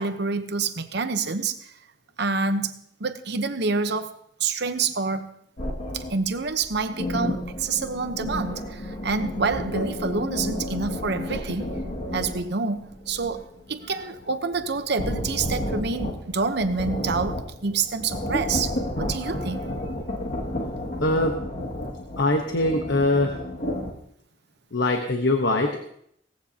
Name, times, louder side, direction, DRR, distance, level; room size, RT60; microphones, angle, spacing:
voice 1, 0.0-1.7 2.2-2.7 3.0-4.1 4.4-5.3 5.9-11.7 12.1-19.9, right 4 dB, 65° right, 9 dB, 0.9 m, -27 dB
sound 1, 5.6-12.4 12.8-23.9, left 1 dB, 50° left, 2.2 m, -31 dB
voice 2, 21.0-21.4 22.2-23.4 24.7-25.9, left 2 dB, 70° left, 4 dB, 1.1 m, -22 dB
17.5 x 15.0 x 2.9 m, 0.69 s
head